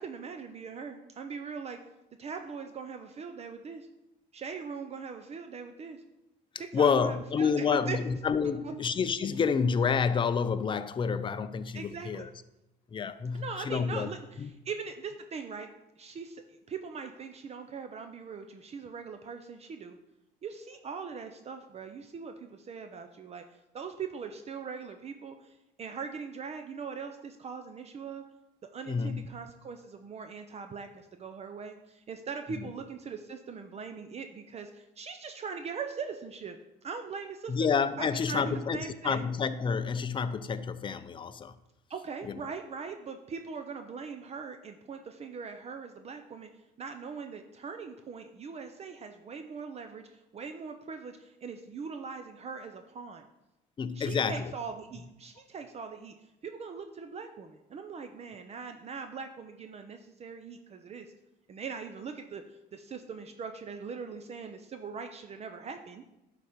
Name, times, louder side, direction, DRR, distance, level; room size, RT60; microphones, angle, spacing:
voice 1, 0.0-1.8 2.2-3.9 4.3-6.0 6.6-8.0 8.6-8.7 11.7-12.3 13.3-15.7 16.0-20.0 20.4-23.4 23.7-28.2 28.7-37.5 38.0-39.2 41.9-46.5 46.8-53.2 53.9-56.1 56.4-61.1 61.5-62.4 62.7-66.0, right 5 dB, 40° right, 7 dB, 0.6 m, -41 dB
voice 2, 6.7-12.3 12.9-14.1 14.4-14.5 28.9-29.3 32.5-32.7 37.5-41.6 42.2-42.4 53.8-54.5, left 6 dB, 30° left, 12 dB, 0.5 m, -29 dB
11.0 x 4.1 x 5.0 m, 0.94 s
cardioid pair, 110°, 17 cm